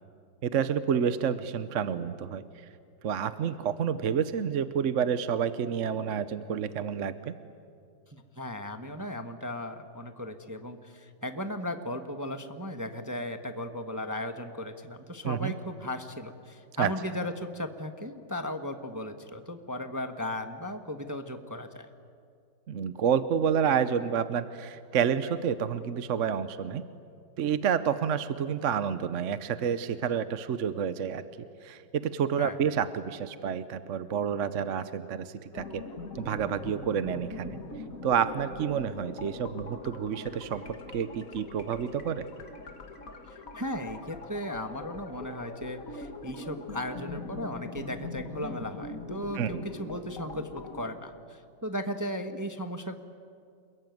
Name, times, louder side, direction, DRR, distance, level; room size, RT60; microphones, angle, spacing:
voice 1, 0.4-2.4 3.0-7.3 15.2-15.5 16.8-16.9 22.7-26.8 27.4-31.2 31.6-35.8 36.1-37.6 38.0-42.2 49.3-49.6, right 8 dB, 55° right, 12 dB, 0.9 m, -29 dB
voice 2, 8.1-21.9 32.4-32.6 43.3-53.0, left 1 dB, 15° right, 6 dB, 0.9 m, -36 dB
sound 1, 35.5-50.9, left 3 dB, 45° left, 2.3 m, -42 dB
27.5 x 22.0 x 9.3 m, 2.4 s
omnidirectional pair, 2.0 m